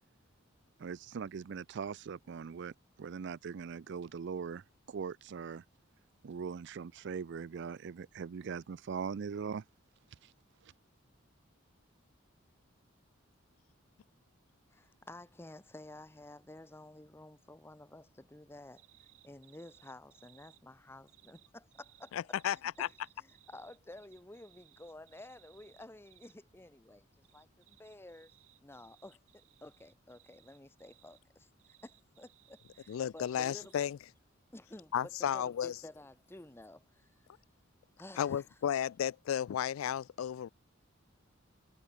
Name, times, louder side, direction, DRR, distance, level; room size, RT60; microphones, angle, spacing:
voice 1, 0.8-5.6 6.2-9.6 10.2-10.3 10.6-10.7, right 6 dB, 60° right, 0.4 m, -41 dB
voice 2, 14.7-18.9 19.2-22.2 22.8-27.1 27.3-28.3 28.6-31.5 31.8-33.7 34.5-37.1 38.0-38.4, left 1 dB, 10° left, 0.9 m, -52 dB
sound 1, 18.8-20.6 21.1-26.4 27.2-31.2 31.6-33.9, right 16 dB, 80° right, 1.8 m, -64 dB
voice 3, 22.1-22.9 32.9-34.0 34.9-35.7 38.2-40.5, left 9 dB, 85° left, 0.3 m, -33 dB
head